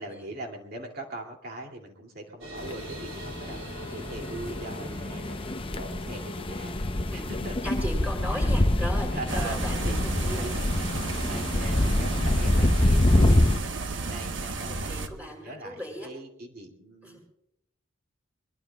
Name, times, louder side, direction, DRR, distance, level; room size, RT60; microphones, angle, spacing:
voice 1, 0.0-6.8 7.1-7.6 8.3-8.5 9.1-11.0 11.3-17.2, right 2 dB, 50° right, 2 dB, 2.7 m, -41 dB
sound 1, 2.4-13.3, right 1 dB, 85° right, 2.8 m, -46 dB
sound 2, 2.6-13.6, left 1 dB, 25° left, 0.7 m, -26 dB
voice 2, 7.6-10.4 14.7-16.1 17.0-17.2, equal, 10° right, -2 dB, 6.1 m, -37 dB
sound 3, 9.3-15.1, right 3 dB, 65° right, 1.2 m, -32 dB
23.0 x 21.5 x 2.4 m, 0.77 s
head